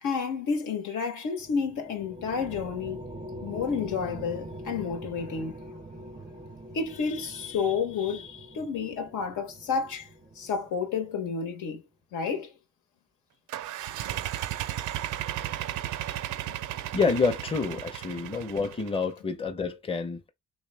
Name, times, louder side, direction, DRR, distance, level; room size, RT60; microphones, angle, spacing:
voice 1, 0.0-3.0 3.4-5.6 6.7-10.1 10.4-11.8 12.1-12.5, left 5 dB, 80° left, 1.2 m, -30 dB
sound 1, 1.4-11.2, right 1 dB, 15° right, 0.4 m, -43 dB
sound 2, 13.5-19.0, right 12 dB, 80° right, 0.5 m, -34 dB
voice 2, 16.9-20.2, left 4 dB, 20° left, 0.7 m, -28 dB
3.3 x 3.1 x 3.3 m
cardioid pair, 90°, 30 cm